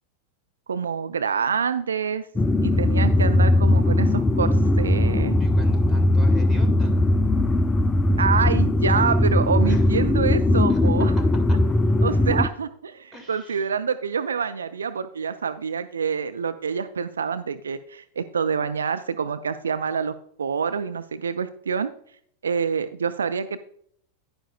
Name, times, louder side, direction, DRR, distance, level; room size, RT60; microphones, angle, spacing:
voice 1, 0.7-2.3 2.6-5.4 8.2-11.1 12.0-21.9 22.4-23.6, right 6 dB, 70° right, 11 dB, 0.4 m, -26 dB
sound 1, 2.4-12.5, left 1 dB, 15° left, 0.4 m, -19 dB
voice 2, 5.4-7.0 9.6-9.9 10.7-11.1 11.5-11.6 13.1-13.7, equal, 10° right, 3 dB, 2.0 m, -42 dB
10.0 x 9.4 x 2.3 m, 0.65 s
figure-of-eight pair, 90°, 0 cm